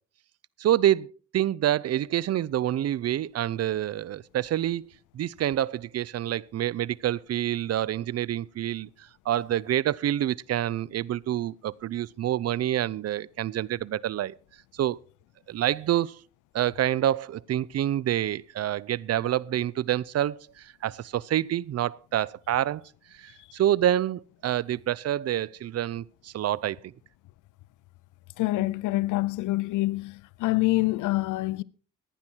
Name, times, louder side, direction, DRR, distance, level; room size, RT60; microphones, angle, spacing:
voice 1, 0.6-1.1 1.3-14.3 14.7-15.0 15.5-16.2 16.5-22.8 23.1-26.9, right 12 dB, 55° right, 0.6 m, -27 dB
voice 2, 28.4-31.6, left 19 dB, 85° left, 0.6 m, -26 dB
15.5 x 10.0 x 4.5 m
cardioid pair, 90°, 30 cm